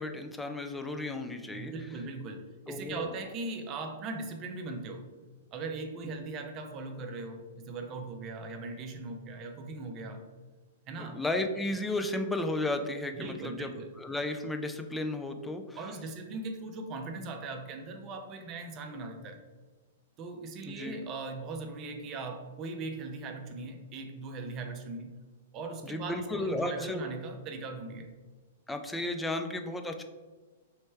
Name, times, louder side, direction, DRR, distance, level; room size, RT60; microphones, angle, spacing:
voice 1, 0.0-1.7 2.7-3.1 11.0-15.8 20.7-21.0 25.8-27.0 28.7-30.0, left 2 dB, 5° left, 6 dB, 0.4 m, -34 dB
voice 2, 1.5-5.1 5.5-10.2 10.9-11.2 13.1-13.9 15.7-19.4 20.2-25.1 25.5-28.1, right 3 dB, 35° right, 5 dB, 0.6 m, -39 dB
3.3 x 3.2 x 4.3 m, 1.3 s
figure-of-eight pair, 110°, 0 cm